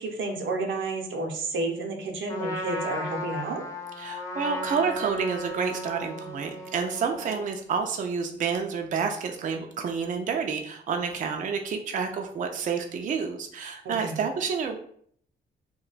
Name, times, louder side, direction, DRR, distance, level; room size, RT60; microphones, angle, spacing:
voice 1, 0.0-3.7 13.8-14.3, right 2 dB, 80° right, 2 dB, 0.6 m, -31 dB
Trumpet, 2.3-7.5, equal, 15° left, 0.7 m, -35 dB
voice 2, 4.0-14.8, right 6 dB, 45° right, 4 dB, 0.4 m, -29 dB
2.2 x 2.2 x 3.8 m, 0.62 s
cardioid pair, 85°, 19 cm